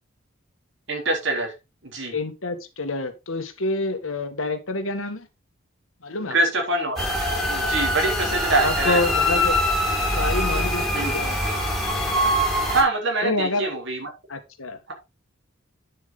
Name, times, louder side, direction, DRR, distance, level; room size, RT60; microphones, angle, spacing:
voice 1, 0.9-1.5 1.8-2.1 6.3-7.1 7.5-9.0 10.9-11.1 12.6-14.1, right 2 dB, 60° right, 3 dB, 3.5 m, -24 dB
voice 2, 2.1-5.3 6.0-6.4 8.6-9.6 10.1-11.4 13.2-13.7 14.3-14.8, left 2 dB, 85° left, 8 dB, 1.8 m, -27 dB
sound 1, 7.0-12.8, left 1 dB, ahead, 4.8 m, -23 dB
9.5 x 7.4 x 3.8 m, 0.25 s
head